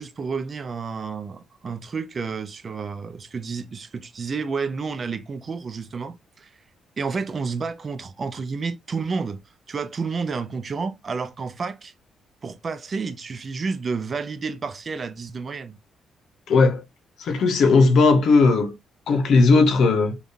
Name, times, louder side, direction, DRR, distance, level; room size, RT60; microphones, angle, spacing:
voice 1, 0.0-6.5 7.0-9.4 9.7-11.9 12.4-15.8, right 5 dB, 40° right, 0.5 m, -30 dB
voice 2, 16.5-16.8 17.2-18.8 19.1-20.2, left 3 dB, 70° left, 0.7 m, -17 dB
3.5 x 2.4 x 2.6 m
cardioid pair, 90°, 0 cm